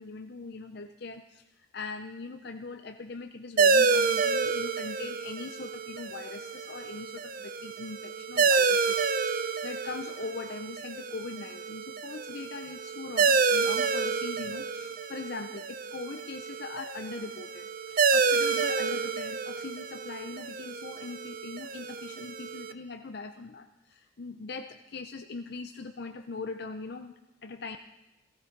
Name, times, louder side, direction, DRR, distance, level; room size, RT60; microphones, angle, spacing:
voice 1, 0.0-27.1 27.4-27.8, left 4 dB, 55° left, 6 dB, 0.6 m, -41 dB
sound 1, 3.6-22.7, right 5 dB, 45° right, 0.6 m, -29 dB
18.0 x 15.5 x 4.6 m, 1.0 s
head